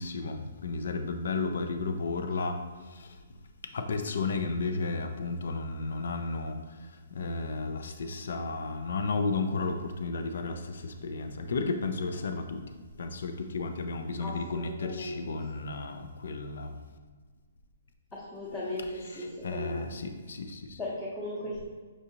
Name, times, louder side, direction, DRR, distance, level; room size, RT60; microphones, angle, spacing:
voice 1, 0.0-2.6 2.9-3.2 3.7-12.6 13.0-16.7 19.0-20.8, left 3 dB, 70° left, 6 dB, 0.4 m, -33 dB
voice 2, 14.2-15.2 18.1-19.9 20.8-21.6, left 1 dB, 10° left, -10 dB, 0.8 m, -37 dB
6.1 x 2.7 x 2.7 m, 1.5 s
hypercardioid pair, 165°, 0 cm